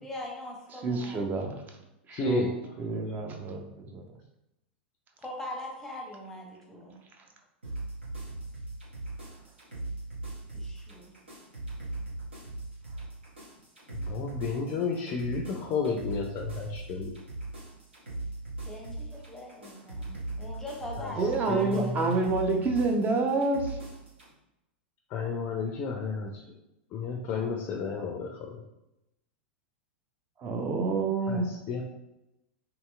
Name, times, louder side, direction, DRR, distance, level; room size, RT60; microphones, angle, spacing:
voice 1, 0.0-1.3 5.2-6.9 10.5-11.1 18.7-22.3, left 1 dB, 5° left, -2 dB, 0.7 m, -41 dB
voice 2, 0.8-1.5 2.3-2.4 2.8-4.0 21.2-23.8 30.4-31.5, right 3 dB, 30° right, 3 dB, 0.5 m, -28 dB
voice 3, 2.2-2.5 14.1-17.1 21.0-21.1 21.5-22.2 25.1-26.3 26.9-28.6 31.3-31.8, left 5 dB, 35° left, 2 dB, 0.4 m, -32 dB
sound 1, 7.6-24.3, right 2 dB, 85° right, 1.1 m, -39 dB
2.8 x 2.8 x 2.3 m, 0.90 s
hypercardioid pair, 95°, 6 cm